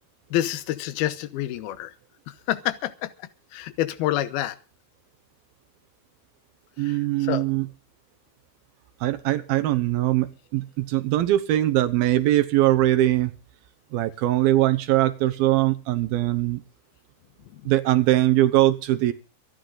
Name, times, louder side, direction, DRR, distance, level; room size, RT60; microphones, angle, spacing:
voice 1, 0.3-1.9 2.3-4.6 6.8-7.5 17.5-17.6, left 13 dB, 85° left, 12 dB, 2.9 m, -28 dB
voice 2, 6.8-7.7 9.0-13.3 13.9-16.6 17.7-19.1, right 15 dB, 75° right, 9 dB, 2.8 m, -21 dB
25.5 x 10.5 x 3.9 m, 0.34 s
omnidirectional pair, 4.4 m